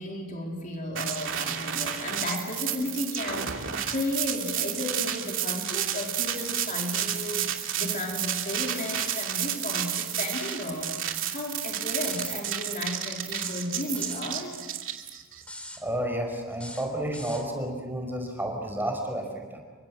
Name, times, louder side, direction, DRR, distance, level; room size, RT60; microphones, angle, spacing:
voice 1, 0.0-14.6, left 1 dB, 40° left, 0 dB, 4.1 m, -34 dB
sound 1, 1.0-15.4, right 10 dB, 65° right, 2.8 m, -31 dB
sound 2, 8.7-9.0 10.2-10.7 12.0-12.4 13.3-14.3 15.4-15.8 16.5-17.5, left 1 dB, 5° left, 3.3 m, -43 dB
voice 2, 15.8-19.6, right 1 dB, 10° right, 2 dB, 5.2 m, -31 dB
30.0 x 25.0 x 6.3 m, 1.3 s
head